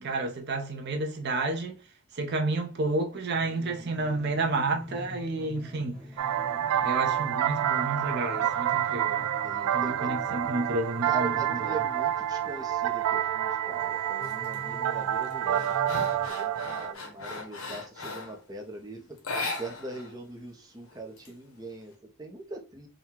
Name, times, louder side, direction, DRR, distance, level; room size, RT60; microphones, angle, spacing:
voice 1, 0.0-1.8 2.1-6.0 6.6-9.3 9.7-11.8, right 2 dB, 50° right, 0.6 m, -31 dB
sound 1, 3.3-16.3, equal, 5° left, 1.3 m, -45 dB
sound 2, 6.2-16.9, right 11 dB, 90° right, 0.4 m, -28 dB
voice 2, 6.4-6.7 9.4-10.1 11.0-22.9, right 2 dB, 15° right, 0.6 m, -41 dB
sound 3, 14.2-14.6 15.0-18.4 19.2-20.1 20.4-20.5 20.9-21.8, left 3 dB, 75° left, 1.1 m, -37 dB
3.7 x 2.2 x 4.4 m
head